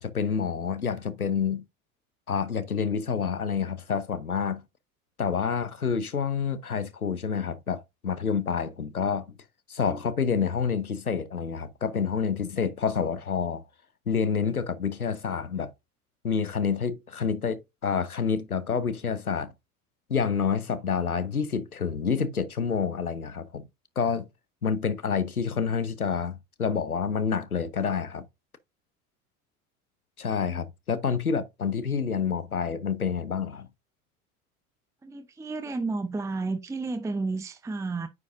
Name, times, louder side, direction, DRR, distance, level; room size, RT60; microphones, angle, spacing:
voice 1, 0.0-1.6 2.3-4.6 5.2-9.3 9.7-13.6 14.1-15.7 16.2-19.5 20.1-23.6 24.0-24.3 24.6-28.3 30.2-33.7, left 6 dB, 90° left, 0.8 m, -28 dB
voice 2, 35.0-38.1, right 3 dB, 5° right, 0.6 m, -31 dB
9.5 x 4.8 x 2.6 m
figure-of-eight pair, 65°, 42 cm